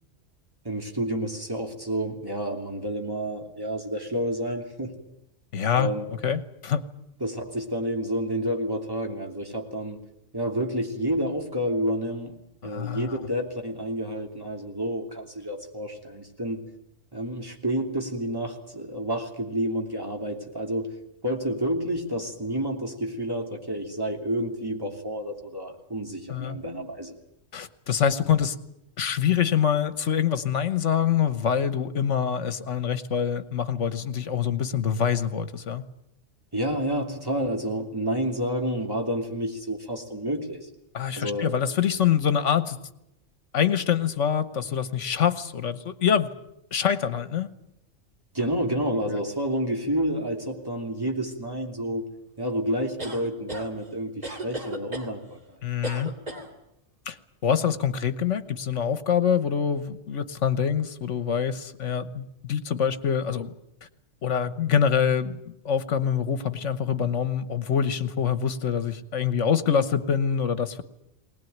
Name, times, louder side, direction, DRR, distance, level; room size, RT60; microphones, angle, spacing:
voice 1, 0.6-4.9 5.7-6.0 7.2-10.0 10.3-16.7 17.1-21.0 21.2-27.1 36.5-40.7 41.2-41.5 48.3-52.1 52.4-55.6, right 1 dB, 15° right, 2 dB, 3.0 m, -29 dB
voice 2, 5.5-5.9 6.2-6.8 12.6-13.1 26.3-26.6 27.5-28.6 29.0-35.8 40.9-42.8 43.5-46.3 46.7-47.5 49.1-49.2 55.6-56.1 57.1-57.2 57.4-63.5 64.2-70.8, left 8 dB, 70° left, 13 dB, 1.5 m, -25 dB
sound 1, 53.0-53.7 54.2-55.1 55.8-56.5, right 1 dB, 30° right, 2.8 m, -34 dB
20.5 x 19.5 x 9.4 m, 0.82 s
omnidirectional pair, 1.3 m